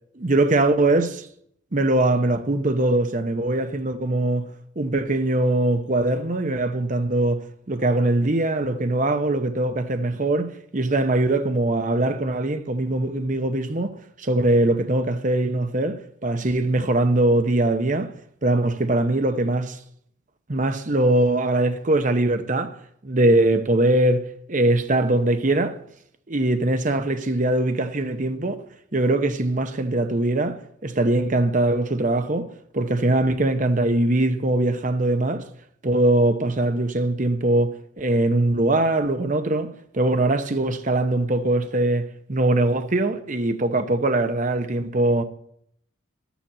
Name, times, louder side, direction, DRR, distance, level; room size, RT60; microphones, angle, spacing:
voice 1, 0.2-1.3 1.7-4.5 4.8-13.9 14.2-18.1 18.4-19.8 20.5-22.7 23.0-25.7 26.3-28.6 28.9-32.5 32.7-35.5 35.8-45.2, right 2 dB, 40° right, 0.9 m, -22 dB
12.0 x 7.2 x 7.3 m
head